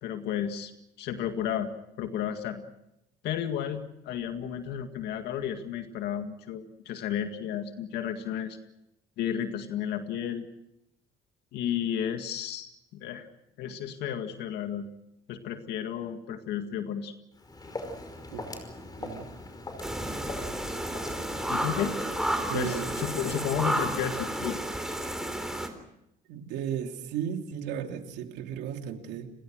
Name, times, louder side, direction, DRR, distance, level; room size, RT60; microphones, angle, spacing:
voice 1, 0.0-0.7 1.0-1.7 2.0-2.6 3.2-8.6 9.2-10.5 11.5-13.3 13.6-14.9 15.3-17.1 21.5-22.0 22.5-24.6, left 9 dB, 80° left, 7 dB, 2.0 m, -32 dB
Walk footsteps, 17.3-23.9, left 2 dB, 25° left, 5.3 m, -42 dB
sound 1, 19.8-25.7, right 1 dB, 5° right, 3.6 m, -32 dB
voice 2, 22.5-22.9 26.3-29.3, right 9 dB, 90° right, 4 dB, 2.9 m, -34 dB
30.0 x 21.5 x 6.4 m, 0.84 s
cardioid pair, 110°, 17 cm